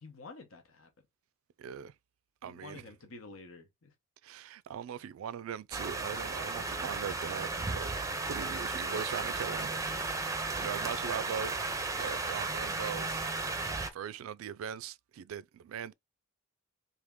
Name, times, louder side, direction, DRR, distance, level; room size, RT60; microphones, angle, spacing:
voice 1, 0.0-0.9 1.7-1.8 2.4-3.9, left 3 dB, 70° left, 0.9 m, -50 dB
voice 2, 1.6-1.9 2.4-2.9 4.2-8.0 8.3-9.7 10.6-11.6 12.0-13.2 13.9-15.9, right 8 dB, 75° right, 0.3 m, -40 dB
sound 1, 5.7-13.9, right 3 dB, 15° right, 0.5 m, -34 dB
3.5 x 2.8 x 3.5 m
head